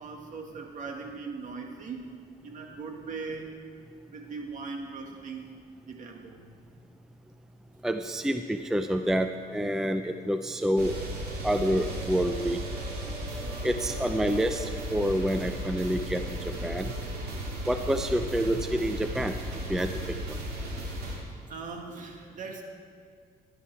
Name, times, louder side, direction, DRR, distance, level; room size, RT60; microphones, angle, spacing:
voice 1, 0.0-2.0 2.4-3.5 4.1-5.4 5.8-6.4 13.5-13.6 17.5-17.6 21.5-22.6, right 4 dB, 50° right, 2 dB, 1.9 m, -39 dB
voice 2, 7.8-11.0 11.4-12.6 13.6-16.9 17.7-19.4 19.7-19.9 20.3-20.4, equal, 5° right, 7 dB, 0.5 m, -28 dB
sound 1, 10.8-21.2, right 1 dB, 65° right, 2.7 m, -35 dB
13.5 x 11.5 x 4.6 m, 2.1 s
cardioid pair, 110°, 17 cm